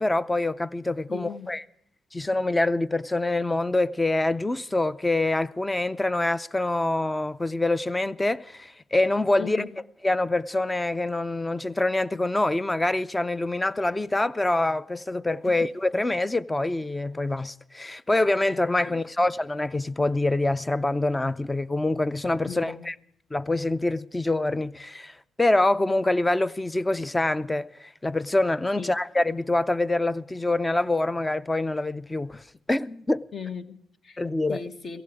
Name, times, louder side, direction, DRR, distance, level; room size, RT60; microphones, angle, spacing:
voice 1, 0.0-1.6 2.1-9.6 10.0-22.9 23.3-32.4 32.7-33.2 34.2-34.6, left 2 dB, 15° left, 0.6 m, -25 dB
voice 2, 1.1-1.5 9.4-9.7 15.5-15.6 18.8-19.0 22.4-22.9 28.8-28.9 33.3-34.2 34.5-35.0, left 6 dB, 50° left, 1.5 m, -37 dB
16.0 x 16.0 x 4.9 m
cardioid pair, 90°, 0 cm